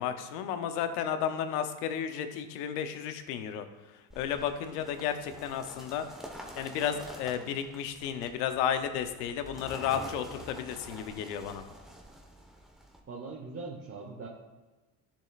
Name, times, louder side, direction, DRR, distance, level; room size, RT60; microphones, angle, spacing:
voice 1, 0.0-3.6 4.2-6.0 6.6-11.6, left 9 dB, 90° left, 9 dB, 0.8 m, -33 dB
sound 1, 4.1-13.0, equal, ahead, 1.1 m, -47 dB
voice 2, 13.1-14.3, right 3 dB, 30° right, -1 dB, 1.1 m, -41 dB
10.0 x 7.3 x 2.5 m, 1.2 s
supercardioid pair, 100°, 45 cm